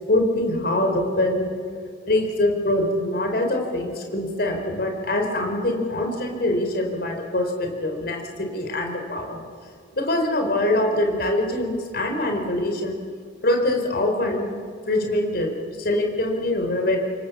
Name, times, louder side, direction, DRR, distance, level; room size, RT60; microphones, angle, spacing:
voice 1, 0.1-1.5 2.1-9.4 9.9-13.0 13.4-14.5 14.9-15.5 15.8-17.0, left 1 dB, 55° left, 3 dB, 4.4 m, -24 dB
28.0 x 23.5 x 7.3 m, 2.2 s
head